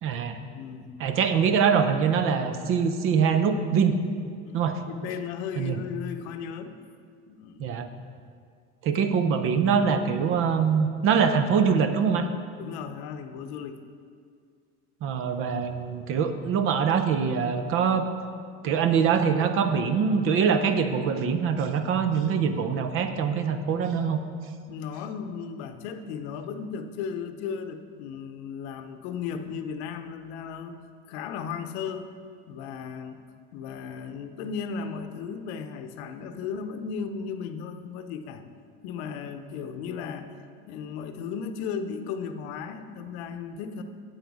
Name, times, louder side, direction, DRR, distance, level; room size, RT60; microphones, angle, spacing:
voice 1, 0.0-0.4 1.0-4.0 4.5-4.8 5.6-5.8 7.6-7.9 8.8-12.3 15.0-18.1 18.6-24.2, right 6 dB, 40° right, 9 dB, 0.6 m, -24 dB
voice 2, 0.5-1.0 4.4-4.6 4.9-6.8 7.3-7.7 12.6-13.8 24.7-30.8 31.1-32.2 32.5-33.2 33.5-38.4 38.8-40.4 40.7-43.8, left 6 dB, 85° left, 8 dB, 0.8 m, -35 dB
8.0 x 7.9 x 4.8 m, 2.1 s
cardioid pair, 155°, 32 cm